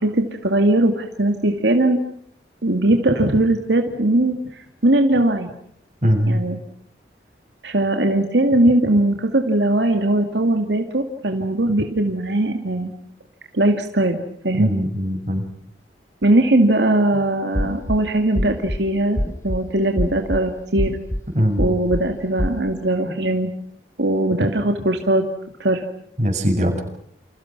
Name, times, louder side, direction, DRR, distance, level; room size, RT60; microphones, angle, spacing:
voice 1, 0.0-2.0 2.6-5.5 6.3-6.6 7.6-12.9 13.5-14.2 14.4-14.7 16.2-19.2 19.4-20.9 21.6-23.5 24.0-25.2 25.6-25.8, right 1 dB, 80° right, 4 dB, 2.4 m, -19 dB
voice 2, 6.0-6.4 14.5-15.4 21.3-21.6 23.1-23.2 26.2-26.8, equal, 40° right, 3 dB, 7.1 m, -20 dB
sound 1, 17.5-18.0 18.4-18.8 19.2-19.6 20.0-20.4 20.8-21.2 21.6-22.0 22.4-22.6, equal, 15° left, 1.5 m, -23 dB
29.5 x 28.0 x 6.1 m, 0.69 s
head